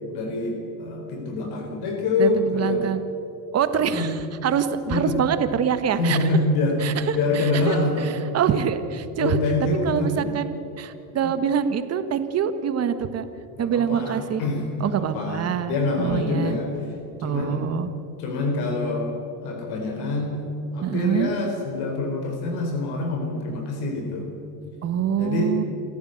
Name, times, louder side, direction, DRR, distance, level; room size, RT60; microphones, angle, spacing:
voice 1, 0.1-2.8 3.8-4.1 4.4-4.5 4.9-5.1 6.0-8.1 9.2-10.3 13.6-16.7 17.2-17.7 18.2-19.1 19.4-20.3 20.7-24.3 25.2-25.5, left 2 dB, 50° left, 3 dB, 4.3 m, -25 dB
voice 2, 2.2-3.0 3.5-6.2 6.8-9.4 9.8-13.3 13.6-14.4 14.8-16.6 17.2-17.9 20.8-21.3 24.8-25.6, right 8 dB, 30° right, 11 dB, 1.5 m, -25 dB
27.5 x 14.0 x 7.9 m, 2.8 s
supercardioid pair, 115°, 47 cm